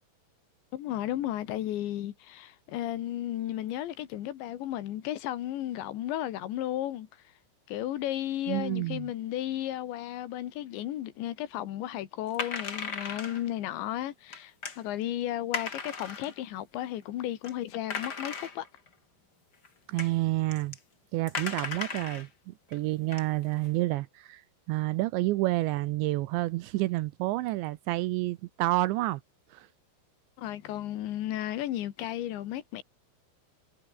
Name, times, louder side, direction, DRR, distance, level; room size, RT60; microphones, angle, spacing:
voice 1, 0.7-7.1 7.7-18.7 30.4-32.8, left 13 dB, 70° left, 3.8 m, -34 dB
voice 2, 8.5-9.1 19.9-20.8 21.1-24.4 24.7-29.2 29.5-29.7, right 18 dB, 85° right, 2.7 m, -29 dB
sound 1, 12.3-13.5 14.3-14.8 15.5-16.4 17.0-17.1 17.4-17.5 17.9-18.9 19.6-19.7 20.0-20.1 20.5-20.8 21.3-22.3 22.7-22.8 23.1-23.7, left 5 dB, 35° left, 1.8 m, -36 dB
omnidirectional pair, 5.8 m